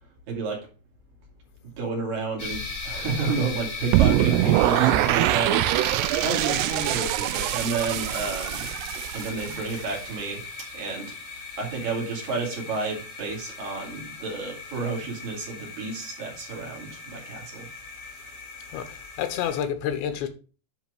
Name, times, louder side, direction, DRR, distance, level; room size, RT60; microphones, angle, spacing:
voice 1, 0.3-0.7 1.8-8.7 9.1-10.4 10.7-11.1 11.6-17.7, right 4 dB, 55° right, 4.1 m, -31 dB
sound 1, 2.4-19.6, left 4 dB, 30° left, 1.6 m, -38 dB
sound 2, 3.9-10.0, right 15 dB, 80° right, 2.5 m, -23 dB
voice 2, 18.7-20.3, left 9 dB, 90° left, 3.4 m, -29 dB
10.0 x 4.5 x 4.8 m
omnidirectional pair, 5.0 m